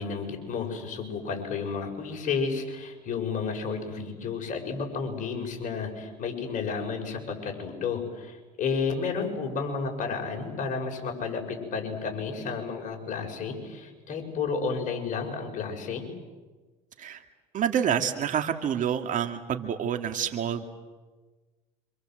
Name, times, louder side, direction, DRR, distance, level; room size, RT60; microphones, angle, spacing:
voice 1, 0.0-16.1, left 5 dB, 45° left, 2 dB, 6.7 m, -32 dB
voice 2, 17.5-20.7, right 8 dB, 45° right, 7 dB, 2.3 m, -28 dB
27.0 x 26.0 x 7.9 m, 1.3 s
supercardioid pair, 90°, 18 cm